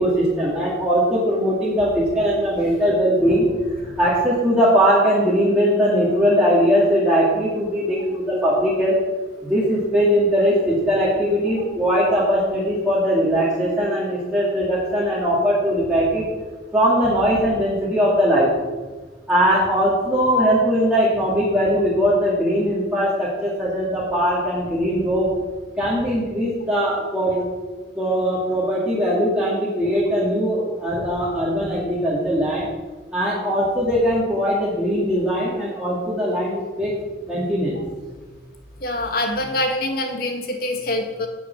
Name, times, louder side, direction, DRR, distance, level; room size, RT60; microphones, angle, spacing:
voice 1, 0.0-9.0 9.4-16.3 16.7-18.5 19.3-25.3 25.8-27.4 28.0-32.7 33.1-36.9 37.2-37.8, equal, 5° right, -8 dB, 2.2 m, -20 dB
voice 2, 38.8-41.3, left 1 dB, 55° left, 3 dB, 1.9 m, -24 dB
9.1 x 6.9 x 8.6 m, 1.3 s
head